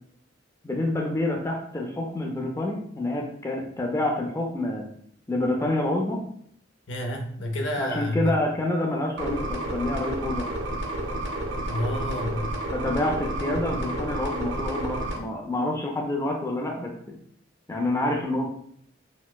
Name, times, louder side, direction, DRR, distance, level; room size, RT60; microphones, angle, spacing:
voice 1, 0.6-4.9 5.3-6.2 7.8-10.5 12.7-16.9 17.7-18.5, left 1 dB, 15° left, 0 dB, 0.4 m, -27 dB
voice 2, 6.9-8.3 11.7-12.5 13.5-13.8, left 1 dB, 65° left, 3 dB, 0.5 m, -29 dB
sound 1, 9.2-15.2, right 1 dB, 65° right, 0.6 m, -31 dB
4.1 x 2.0 x 2.2 m, 0.66 s
head